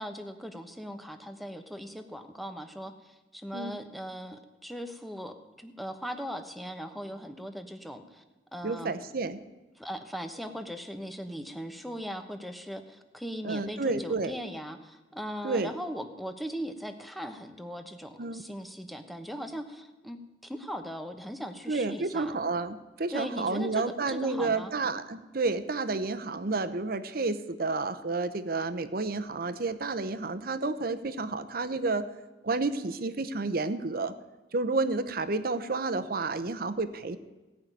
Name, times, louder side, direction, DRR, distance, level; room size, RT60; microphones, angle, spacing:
voice 1, 0.0-8.2 8.5-9.0 9.8-22.4 23.1-24.7, equal, ahead, 7 dB, 1.0 m, -39 dB
voice 2, 8.6-9.4 13.4-14.3 15.4-15.7 18.2-18.4 21.7-32.0 32.4-34.1 34.5-37.2, right 3 dB, 55° right, 12 dB, 0.8 m, -30 dB
17.0 x 5.8 x 9.2 m, 1.2 s
head